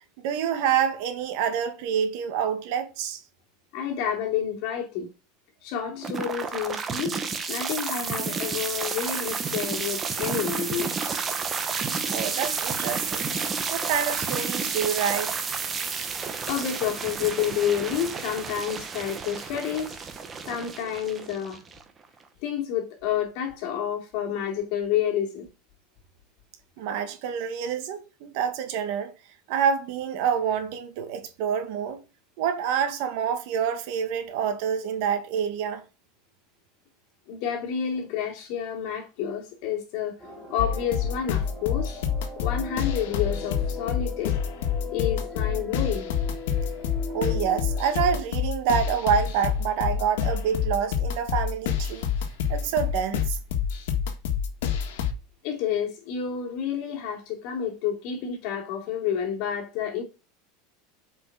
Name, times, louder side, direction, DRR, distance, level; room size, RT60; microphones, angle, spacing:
voice 1, 0.2-3.2 12.1-13.3 13.7-15.4 26.8-29.1 29.5-32.0 32.4-35.8 47.1-52.1 52.5-53.4, right 8 dB, 55° right, 1.7 m, -27 dB
voice 2, 3.7-5.1 5.6-7.1 7.5-10.9 14.6-14.7 16.4-20.0 20.5-21.6 22.4-25.5 37.3-40.2 40.5-42.0 42.4-44.3 44.9-46.1 55.4-60.0, left 8 dB, 50° left, 2.8 m, -29 dB
sound 1, 6.0-22.0, right 5 dB, 20° right, 1.0 m, -31 dB
sound 2, 40.2-48.2, left 4 dB, 5° left, 2.2 m, -39 dB
sound 3, 40.6-55.1, left 8 dB, 75° left, 1.7 m, -28 dB
8.0 x 5.1 x 4.8 m
supercardioid pair, 165°, 0 cm